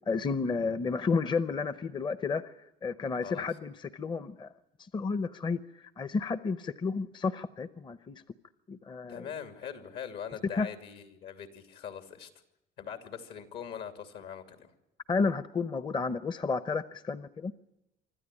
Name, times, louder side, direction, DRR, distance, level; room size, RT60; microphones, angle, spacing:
voice 1, 0.1-2.5 2.8-4.5 4.8-8.2 8.7-9.2 10.5-10.7 15.1-17.5, left 4 dB, 25° left, 15 dB, 0.7 m, -31 dB
voice 2, 9.1-12.3 12.8-14.7, left 8 dB, 75° left, 8 dB, 2.8 m, -42 dB
25.5 x 13.0 x 10.0 m, 0.88 s
cardioid pair, 110°, 17 cm